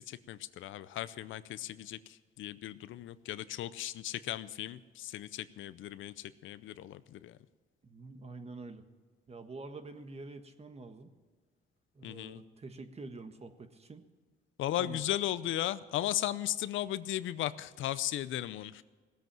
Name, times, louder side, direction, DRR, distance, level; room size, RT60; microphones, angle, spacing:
voice 1, 0.0-7.4 12.0-12.4 14.6-18.8, left 13 dB, 80° left, 15 dB, 0.6 m, -36 dB
voice 2, 7.8-8.8 9.3-11.1 11.9-14.0 14.8-15.0, right 3 dB, 30° right, 8 dB, 1.4 m, -47 dB
17.5 x 8.0 x 7.6 m, 1.5 s
cardioid pair, 90°, 20 cm